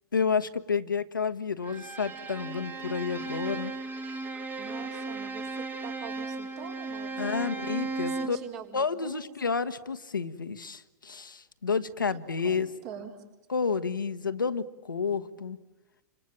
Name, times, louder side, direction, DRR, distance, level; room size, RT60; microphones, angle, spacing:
voice 1, 0.1-3.7 7.2-8.4 8.7-12.7 13.5-15.6, left 5 dB, 85° left, 10 dB, 1.2 m, -30 dB
Bowed string instrument, 1.6-8.5, right 3 dB, 15° right, 1.5 m, -36 dB
voice 2, 4.6-7.6 8.1-9.5 12.0-12.2 12.4-13.2, right 8 dB, 50° right, 3 dB, 4.6 m, -45 dB
28.0 x 26.0 x 7.5 m, 1.0 s
figure-of-eight pair, 105°, 11 cm